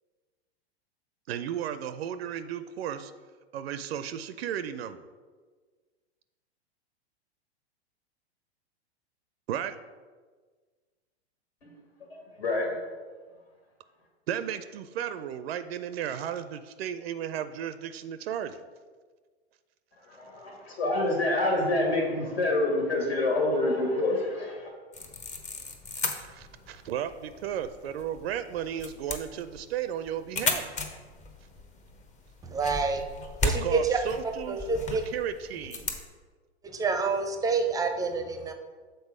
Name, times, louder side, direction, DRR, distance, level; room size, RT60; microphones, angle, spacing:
voice 1, 1.3-3.1 3.5-5.0 9.5-9.7 14.3-18.6 26.2-30.7 33.4-34.6 34.9-35.9, right 9 dB, 65° right, 12 dB, 0.5 m, -34 dB
voice 2, 12.1-12.7 20.1-24.7, left 2 dB, 75° left, -1 dB, 2.0 m, -27 dB
sound 1, 24.9-36.1, left 3 dB, 20° left, 0.8 m, -36 dB
voice 3, 32.4-33.0 33.5-35.0 36.6-38.5, right 4 dB, 10° right, 6 dB, 0.5 m, -28 dB
6.8 x 3.9 x 4.9 m, 1.5 s
hypercardioid pair, 105°, 33 cm